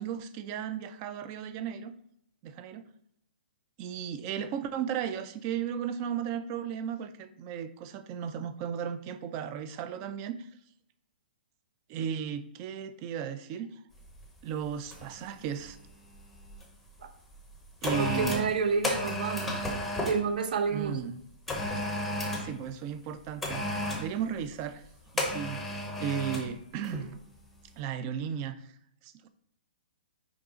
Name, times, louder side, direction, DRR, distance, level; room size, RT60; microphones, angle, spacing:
voice 1, 0.0-1.9 2.4-2.8 3.8-10.5 11.9-13.7 14.4-15.8 17.8-18.5 20.7-21.2 21.8-21.9 22.4-24.8 25.1-25.7 26.0-27.2 27.8-28.7 29.0-29.3, right 8 dB, 20° right, 11 dB, 0.3 m, -35 dB
sound 1, 14.1-14.2 14.9-15.2 15.4-16.6 17.3-20.2 21.5-22.5 23.4-24.1 25.2-26.5 26.8-27.1, left 1 dB, ahead, 0.8 m, -33 dB
voice 2, 17.9-19.7 20.0-21.0, right 5 dB, 55° right, 8 dB, 0.8 m, -29 dB
6.1 x 4.8 x 3.8 m, 0.72 s
hypercardioid pair, 175°, 6 cm